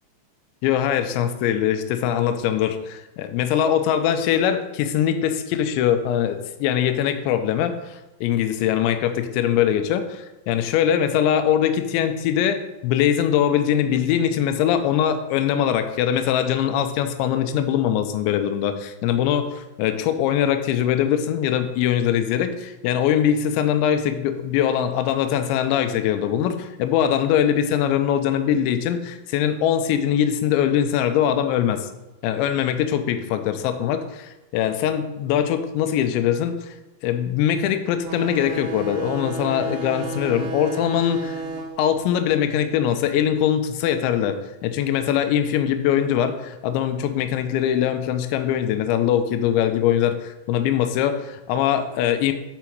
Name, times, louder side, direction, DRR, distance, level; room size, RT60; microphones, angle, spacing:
voice 1, 0.6-31.9 32.2-36.7 37.0-41.4 41.8-52.3, left 9 dB, 85° left, 8 dB, 2.8 m, -22 dB
sound 1, 38.0-43.2, right 3 dB, 85° right, 2.3 m, -33 dB
7.1 x 4.7 x 4.5 m, 0.99 s
omnidirectional pair, 5.3 m